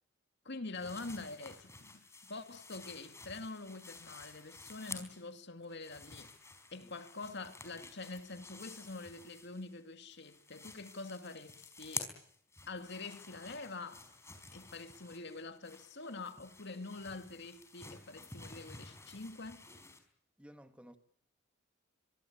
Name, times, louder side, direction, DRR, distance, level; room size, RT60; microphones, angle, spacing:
voice 1, 0.4-6.3 6.7-12.1 12.7-14.0 14.5-19.7, left 3 dB, 60° left, 2.2 m, -45 dB
sound 1, 0.7-5.3 5.6-9.8 10.1-20.0, left 3 dB, 15° left, 4.7 m, -51 dB
voice 2, 20.4-21.0, equal, 5° right, 1.6 m, -55 dB
24.5 x 24.0 x 8.6 m
head